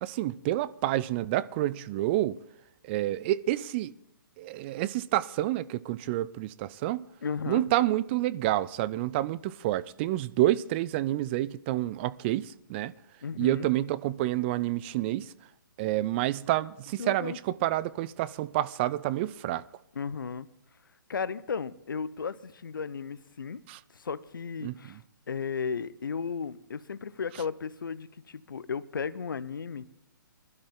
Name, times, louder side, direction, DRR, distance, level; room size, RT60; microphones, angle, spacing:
voice 1, 0.0-2.4 2.8-3.9 4.4-7.0 7.5-12.9 13.4-15.3 15.8-19.6 23.7-23.8 24.6-25.0, right 15 dB, 30° right, 0.5 m, -28 dB
voice 2, 7.2-7.6 13.2-13.7 17.0-17.4 19.9-20.5 21.1-23.6 23.9-25.0 25.3-29.8, left 6 dB, 75° left, 0.8 m, -35 dB
21.0 x 12.0 x 3.8 m
figure-of-eight pair, 130°, 11 cm